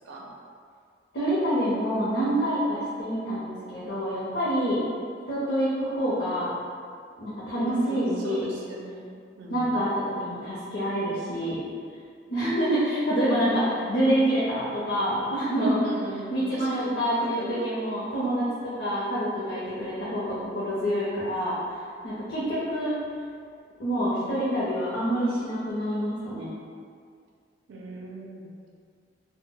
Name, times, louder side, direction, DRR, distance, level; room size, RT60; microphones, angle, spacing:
voice 1, 1.1-4.8 5.3-6.5 7.2-8.5 9.5-11.6 12.3-15.8 16.3-21.6 22.0-23.0 23.8-26.5, equal, 65° left, -10 dB, 0.6 m, -27 dB
voice 2, 7.5-9.8 15.8-17.6 27.7-28.7, right 2 dB, 85° right, -2 dB, 0.4 m, -38 dB
2.1 x 2.0 x 3.7 m, 2.2 s
head